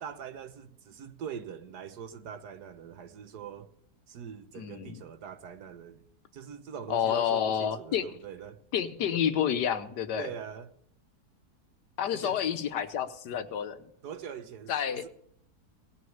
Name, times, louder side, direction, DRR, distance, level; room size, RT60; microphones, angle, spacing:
voice 1, 0.0-3.7 4.1-6.0 6.3-8.6 10.2-10.7 12.1-12.4 14.0-15.1, right 8 dB, 75° right, 1.5 m, -43 dB
voice 2, 4.6-5.0 6.9-8.0 8.7-10.3 12.0-13.8 14.7-15.0, left 9 dB, 80° left, 1.6 m, -29 dB
17.5 x 6.3 x 8.6 m
omnidirectional pair, 1.8 m